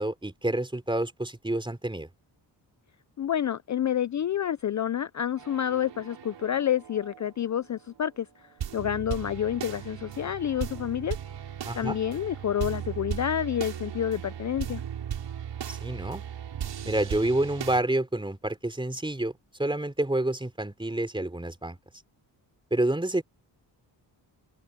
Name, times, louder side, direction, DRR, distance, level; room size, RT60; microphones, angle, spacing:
voice 1, 0.0-2.1 11.6-12.0 15.7-16.2 16.8-19.3 19.6-21.8 22.7-23.2, right 1 dB, 10° right, 3.8 m, -28 dB
voice 2, 3.2-11.2 11.8-14.8, left 10 dB, 45° left, 0.5 m, -29 dB
sound 1, 5.4-8.2 8.5-17.8, right 9 dB, 90° right, 7.3 m, -37 dB
open air
cardioid pair, 90°, 42 cm